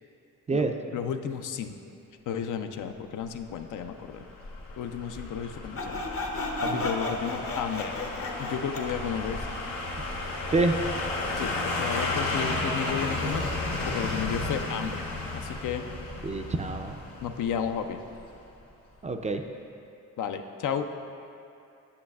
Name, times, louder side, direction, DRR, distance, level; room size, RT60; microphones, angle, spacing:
voice 1, 0.5-1.8 2.3-4.3 4.8-6.0 6.6-8.0 8.4-9.5 11.3-13.5 13.8-15.1 15.3-15.9 17.2-18.0 20.2-20.9, left 8 dB, 70° left, 7 dB, 0.5 m, -33 dB
sound 1, 3.4-18.3 18.6-18.7, left 2 dB, 90° left, 1.0 m, -33 dB
Sawing, 5.8-9.0, left 2 dB, 45° left, 0.8 m, -33 dB
voice 2, 16.2-17.0 19.0-19.4, right 3 dB, 25° right, 5 dB, 0.3 m, -26 dB
8.6 x 7.5 x 2.3 m, 2.7 s
cardioid pair, 85°, 32 cm